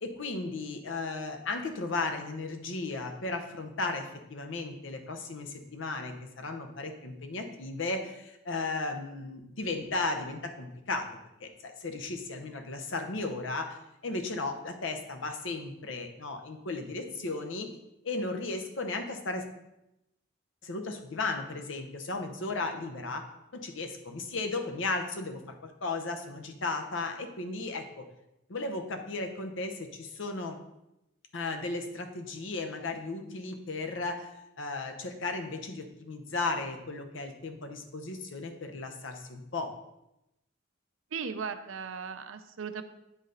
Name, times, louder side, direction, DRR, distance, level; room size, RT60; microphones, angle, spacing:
voice 1, 0.0-11.1 11.4-13.8 14.0-17.7 18.0-19.4 20.6-23.2 23.5-28.1 28.5-30.6 31.3-34.3 34.6-39.7, left 3 dB, 70° left, 5 dB, 0.8 m, -35 dB
voice 2, 41.1-42.8, right 6 dB, 80° right, 9 dB, 0.5 m, -37 dB
8.7 x 4.0 x 3.9 m, 0.88 s
head